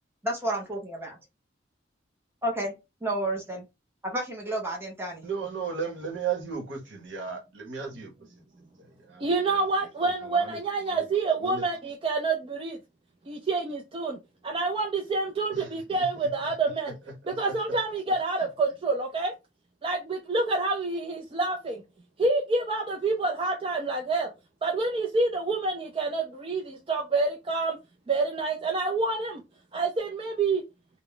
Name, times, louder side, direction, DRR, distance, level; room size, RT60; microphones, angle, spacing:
voice 1, 0.2-1.2 2.4-2.7 3.0-3.6 4.0-5.2, right 1 dB, 15° right, 0.8 m, -31 dB
voice 2, 5.2-8.1 9.1-9.2 9.5-9.6 10.2-10.6 10.9-11.0 11.4-11.6 15.5-15.7, right 6 dB, 75° right, 1.0 m, -34 dB
voice 3, 9.2-12.8 13.3-14.2 14.4-16.9 17.2-19.3 19.8-21.8 22.2-24.3 24.6-27.8 28.1-29.4 29.7-30.6, right 3 dB, 30° right, 0.4 m, -27 dB
2.3 x 2.0 x 3.7 m
head